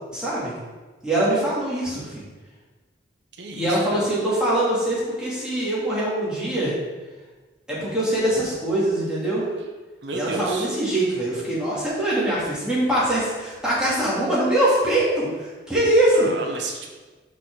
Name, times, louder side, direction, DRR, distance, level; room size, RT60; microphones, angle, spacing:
voice 1, 0.1-0.5 1.0-2.2 3.5-6.7 7.7-9.5 10.1-16.3, right 1 dB, 5° right, -9 dB, 2.6 m, -23 dB
voice 2, 3.4-4.1 10.0-10.7 16.1-16.9, right 3 dB, 80° right, 2 dB, 1.0 m, -32 dB
6.0 x 4.8 x 6.2 m, 1.3 s
head